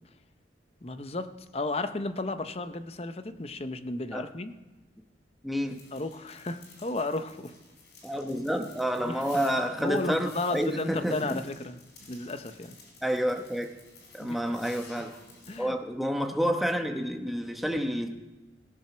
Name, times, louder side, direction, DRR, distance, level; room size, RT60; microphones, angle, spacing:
voice 1, 0.8-4.6 5.9-7.5 9.0-9.2 9.8-11.8 12.1-12.7 14.2-14.6 15.5-15.8, left 2 dB, 35° left, 10 dB, 0.7 m, -33 dB
voice 2, 5.4-5.8 8.0-11.4 13.0-13.7 14.1-15.1 15.6-18.2, equal, ahead, 4 dB, 1.0 m, -29 dB
sound 1, 5.7-15.6, left 3 dB, 75° left, 3.4 m, -53 dB
16.5 x 7.3 x 6.1 m, 1.1 s
head